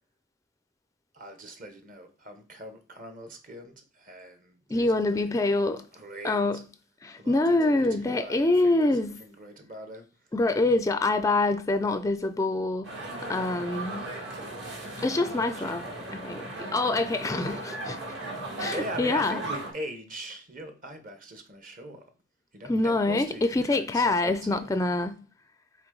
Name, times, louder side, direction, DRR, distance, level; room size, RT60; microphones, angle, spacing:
voice 1, 1.1-5.5 5.9-6.6 7.2-10.3 10.7-11.3 15.5-15.8 18.7-22.1 22.5-24.8, right 1 dB, 45° right, 1.1 m, -42 dB
voice 2, 4.7-5.8 6.2-6.6 7.0-9.2 10.3-12.9 13.3-14.1 15.0-15.9 16.1-18.1 18.6-19.4 22.7-25.2, left 2 dB, 15° left, 0.3 m, -25 dB
sound 1, 12.8-19.7, right 2 dB, 70° right, 2.0 m, -37 dB
5.9 x 4.4 x 3.8 m
head